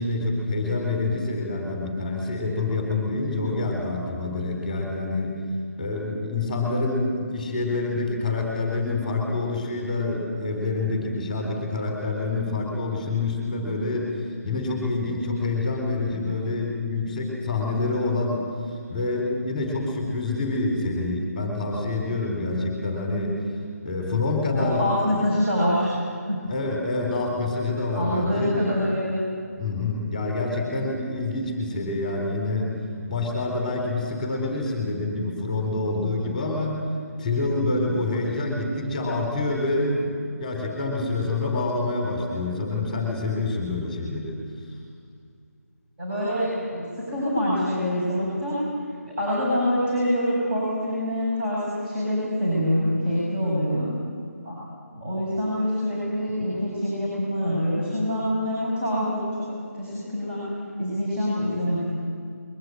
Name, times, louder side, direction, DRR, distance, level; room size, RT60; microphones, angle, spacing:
voice 1, 0.0-5.4 5.8-14.1 14.4-18.5 18.9-23.4 23.8-25.2 26.5-28.6 29.6-32.7 33.1-36.8 37.2-44.4, left 2 dB, 5° left, -1 dB, 4.0 m, -27 dB
voice 2, 24.5-25.9 26.3-26.4 27.9-29.2 46.0-48.6 49.1-53.9 54.4-54.5 54.9-59.5 59.7-60.5 60.8-62.0, equal, 35° right, -7 dB, 7.9 m, -25 dB
22.0 x 19.0 x 9.3 m, 2.2 s
figure-of-eight pair, 155°, 9 cm